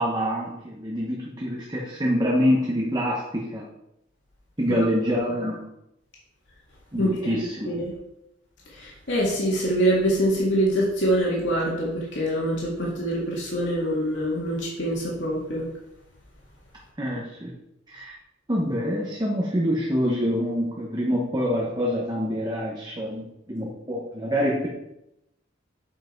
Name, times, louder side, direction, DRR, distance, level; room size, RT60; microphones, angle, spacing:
voice 1, 0.0-3.7 4.6-5.7 6.9-7.7 17.0-17.5 17.9-18.1 18.5-24.7, equal, 20° right, -2 dB, 1.1 m, -26 dB
voice 2, 7.0-7.9 8.7-15.7, right 1 dB, 70° left, -4 dB, 2.1 m, -25 dB
7.8 x 5.8 x 4.5 m, 0.86 s
head